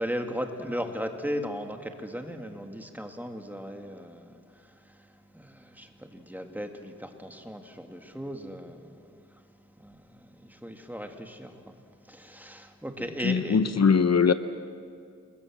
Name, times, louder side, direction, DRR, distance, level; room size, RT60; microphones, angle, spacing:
voice 1, 0.0-9.4 9.8-11.7 12.0-13.6, equal, 5° right, 4 dB, 2.1 m, -37 dB
voice 2, 13.2-14.3, left 6 dB, 60° left, 11 dB, 0.8 m, -21 dB
28.5 x 21.5 x 7.4 m, 2.3 s
wide cardioid pair, 90°, 29 cm